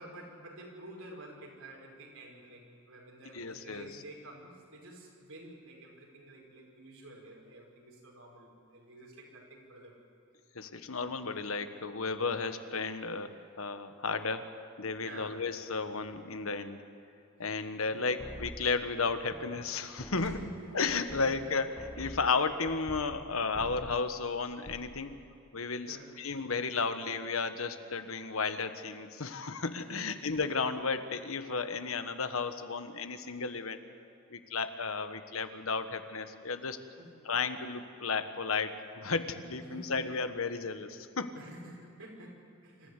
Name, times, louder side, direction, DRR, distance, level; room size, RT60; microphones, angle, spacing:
voice 1, 0.0-9.9 15.0-15.4 17.9-18.1 20.1-20.8 21.2-21.5 25.8-26.1 29.8-30.1 37.0-37.1 39.5-40.0 41.3-42.9, right 1 dB, 85° right, -1 dB, 5.9 m, -50 dB
voice 2, 3.3-3.9 10.5-16.8 17.4-20.3 20.7-25.1 25.5-33.8 34.3-36.8 37.2-41.3, left 4 dB, 80° left, 9 dB, 1.3 m, -33 dB
sound 1, 18.2-19.7 20.0-23.3 23.5-24.1 24.4-25.0, equal, 5° left, 1.3 m, -46 dB
26.5 x 14.5 x 8.3 m, 2.7 s
head